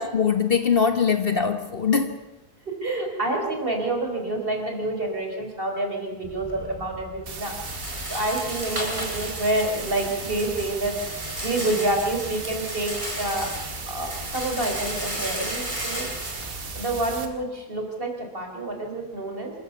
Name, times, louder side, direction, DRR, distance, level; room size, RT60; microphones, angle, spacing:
voice 1, 0.0-2.1, left 6 dB, 40° left, 1.3 m, -22 dB
voice 2, 2.7-7.5 8.1-13.5 13.9-16.1 16.8-19.5, right 2 dB, 35° right, 4.3 m, -28 dB
Rattle, 6.2-17.3, equal, 20° right, 4.4 m, -35 dB
sound 1, 7.3-17.3, right 4 dB, 60° right, 2.2 m, -37 dB
27.0 x 14.0 x 7.0 m
omnidirectional pair, 1.7 m